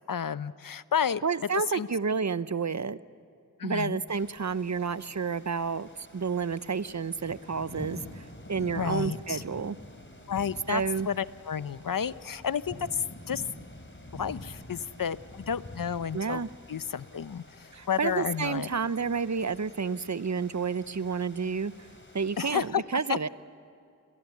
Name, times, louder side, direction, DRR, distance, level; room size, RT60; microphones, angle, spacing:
voice 1, 0.0-1.2 1.7-1.9 3.6-4.0 8.7-9.4 10.3-13.4 14.1-16.4 16.7-18.7 22.4-22.8 23.1-23.3, left 7 dB, 80° left, 16 dB, 0.7 m, -31 dB
voice 2, 1.2-3.0 3.6-9.8 10.7-11.1 16.1-16.5 17.7-21.7 22.1-23.3, right 5 dB, 55° right, 16 dB, 0.8 m, -30 dB
sound 1, 4.1-22.7, left 1 dB, 35° left, 3.4 m, -47 dB
29.5 x 23.0 x 8.3 m, 2.6 s
wide cardioid pair, 50°, 33 cm